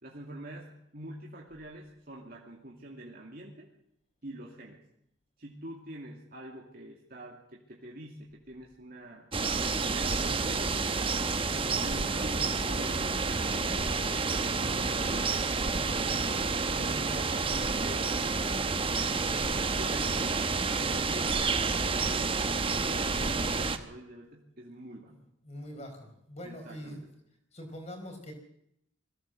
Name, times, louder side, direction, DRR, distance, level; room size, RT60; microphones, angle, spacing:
voice 1, 0.0-3.7 4.2-4.8 5.4-9.3 9.7-11.1 11.7-13.7 14.3-16.5 16.7-18.5 18.9-25.1 26.4-27.1, right 1 dB, 50° right, -2 dB, 2.5 m, -46 dB
sound 1, 9.3-23.8, right 4 dB, 25° right, 1.1 m, -29 dB
Bowed string instrument, 11.9-16.9, equal, 50° left, 4.9 m, -50 dB
voice 2, 14.5-15.0 25.1-25.2 25.4-27.0 27.5-28.3, equal, 35° left, 4 dB, 5.0 m, -44 dB
21.5 x 16.5 x 7.7 m, 0.75 s
head